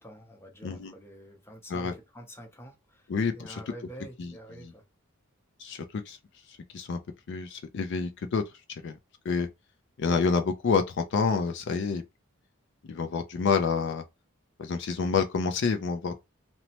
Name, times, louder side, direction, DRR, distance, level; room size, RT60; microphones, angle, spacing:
voice 1, 0.0-3.1 3.3-4.8, equal, 10° left, 0.7 m, -47 dB
voice 2, 0.6-0.9 1.7-1.9 3.1-3.6 4.2-4.3 5.6-6.2 6.7-7.0 7.3-8.4 8.7-9.0 9.2-9.5 10.0-12.0 12.8-14.0 14.6-16.1, left 5 dB, 60° left, 0.4 m, -28 dB
2.9 x 2.1 x 2.8 m
head